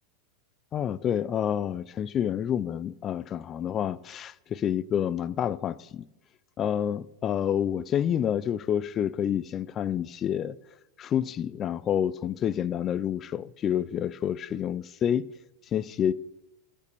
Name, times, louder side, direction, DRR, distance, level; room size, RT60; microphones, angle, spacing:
voice 1, 0.7-6.0 6.6-10.6 11.0-15.3 15.7-16.1, left 9 dB, 30° left, 0.4 m, -28 dB
14.0 x 5.3 x 6.8 m
supercardioid pair, 140°, 0 cm